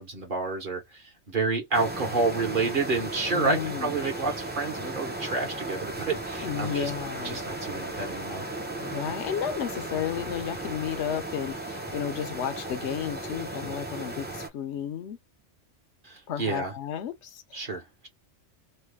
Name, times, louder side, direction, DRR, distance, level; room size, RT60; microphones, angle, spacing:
voice 1, 0.0-6.9 7.2-8.5 16.0-16.7 17.5-18.1, right 4 dB, 45° right, 1.3 m, -29 dB
sound 1, 1.7-14.5, right 2 dB, 10° right, 0.6 m, -36 dB
voice 2, 3.3-4.0 6.4-7.4 8.8-15.2 16.3-17.7, left 9 dB, 70° left, 0.9 m, -33 dB
3.2 x 2.3 x 3.4 m
omnidirectional pair, 1.2 m